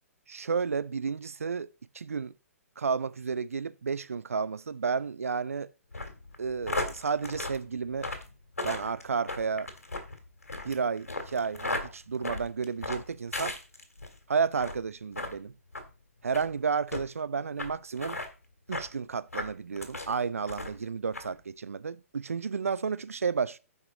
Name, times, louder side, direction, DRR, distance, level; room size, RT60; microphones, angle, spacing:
voice 1, 0.3-1.7 1.9-2.3 2.8-5.7 6.4-8.1 8.6-9.7 10.6-13.5 14.3-15.5 16.2-18.2 18.7-23.6, right 5 dB, 65° right, 0.7 m, -31 dB
sound 1, 5.9-14.1 14.5-14.8 15.1-15.3 15.7-15.9 16.3-16.5 16.9-17.0 17.6-17.7 18.0-18.3 18.7-18.9 19.3-20.1 20.5-20.8 21.1-21.3, left 2 dB, 75° left, 2.4 m, -36 dB
14.5 x 5.7 x 3.9 m
figure-of-eight pair, 120°, 8 cm